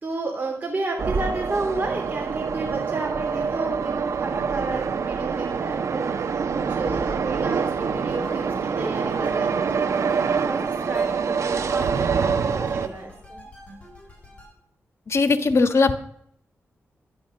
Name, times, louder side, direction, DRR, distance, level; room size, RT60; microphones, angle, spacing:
voice 1, 0.0-13.4, right 3 dB, 30° right, -1 dB, 3.1 m, -32 dB
sound 1, 1.0-12.9, right 6 dB, 75° right, 1.0 m, -25 dB
sound 2, 7.7-14.5, left 1 dB, 25° left, 6.6 m, -43 dB
voice 2, 15.1-15.9, left 4 dB, 60° left, 9 dB, 1.4 m, -19 dB
12.0 x 10.5 x 6.5 m, 0.69 s
cardioid pair, 75°, 5 cm